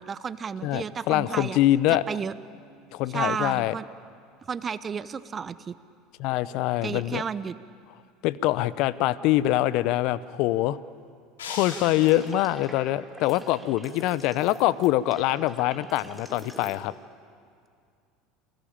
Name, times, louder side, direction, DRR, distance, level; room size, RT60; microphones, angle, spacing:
voice 1, 0.0-1.6 2.1-2.3 3.1-3.9 4.5-5.7 6.8-7.6, right 6 dB, 30° right, 15 dB, 1.0 m, -32 dB
voice 2, 0.6-2.0 2.9-3.7 6.2-7.2 8.2-10.8 11.4-16.9, left 15 dB, 60° left, 18 dB, 0.8 m, -24 dB
sound 1, 11.4-12.6, left 5 dB, 80° left, 3.4 m, -39 dB
sound 2, 11.6-16.7, right 1 dB, ahead, 3.4 m, -45 dB
29.0 x 19.5 x 8.8 m, 2.3 s
hypercardioid pair, 75°, 0 cm